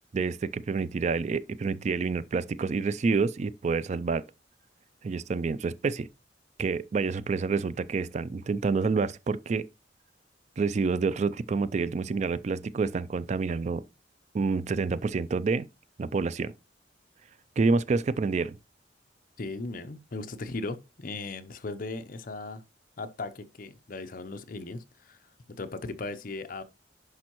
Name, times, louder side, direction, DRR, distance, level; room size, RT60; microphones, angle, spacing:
voice 1, 0.1-4.2 5.0-6.1 6.6-9.7 10.6-13.9 14.3-15.7 16.0-16.5 17.6-18.6, right 4 dB, 40° right, 0.3 m, -28 dB
voice 2, 19.4-22.6 23.0-25.2 25.5-26.6, left 3 dB, 50° left, 0.6 m, -37 dB
10.5 x 5.3 x 3.0 m
head